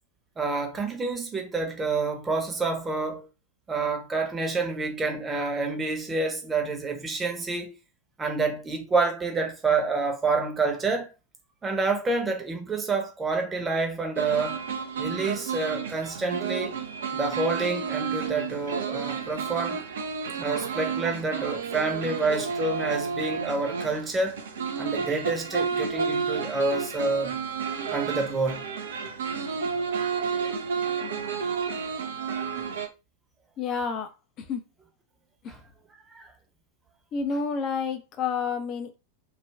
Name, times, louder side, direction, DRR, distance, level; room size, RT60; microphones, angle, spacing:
voice 1, 0.4-3.3 3.7-7.7 8.2-11.1 11.6-14.6 15.0-16.8 17.1-19.8 20.3-24.4 24.8-27.4 27.9-28.6 35.5-35.6 36.1-36.3, right 3 dB, 15° right, 0.8 m, -28 dB
sound 1, 14.2-32.9, right 5 dB, 65° right, 0.5 m, -31 dB
voice 2, 33.6-34.6 35.4-35.6 37.1-39.0, left 5 dB, 35° left, 0.6 m, -30 dB
3.3 x 2.2 x 3.3 m
figure-of-eight pair, 90°, 0 cm